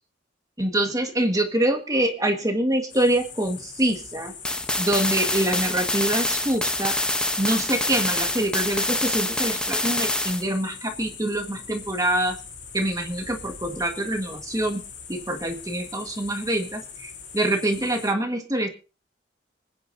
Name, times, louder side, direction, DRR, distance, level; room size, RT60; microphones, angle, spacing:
voice 1, 0.6-4.3 4.8-7.0 7.4-12.4 12.7-14.8 15.1-18.7, right 1 dB, 20° right, 4 dB, 1.6 m, -25 dB
sound 1, 2.9-18.1, left 6 dB, 90° left, 2.6 m, -42 dB
sound 2, 4.4-10.4, left 1 dB, 5° left, 0.8 m, -26 dB
25.5 x 9.6 x 2.7 m, 0.34 s
head